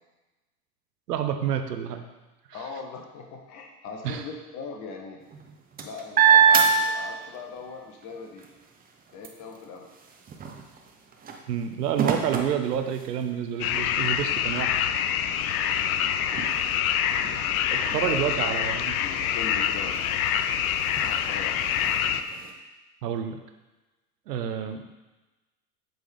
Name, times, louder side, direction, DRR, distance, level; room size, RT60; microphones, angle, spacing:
voice 1, 1.1-2.0 4.0-4.2 11.5-14.9 17.7-18.9 23.0-23.4 24.3-24.8, right 9 dB, 75° right, 6 dB, 0.8 m, -29 dB
voice 2, 2.5-5.2 5.8-8.5 9.1-9.9 15.6-15.9 17.8-20.3 21.0-21.6, left 4 dB, 35° left, 1 dB, 1.0 m, -40 dB
sound 1, 5.2-7.6 8.0-13.5 14.1-14.2 14.5-22.5, right 7 dB, 20° right, 0.6 m, -28 dB
sound 2, 13.6-22.2, left 9 dB, 65° left, 0.5 m, -26 dB
7.8 x 3.8 x 3.4 m, 1.1 s
hypercardioid pair, 85°, 48 cm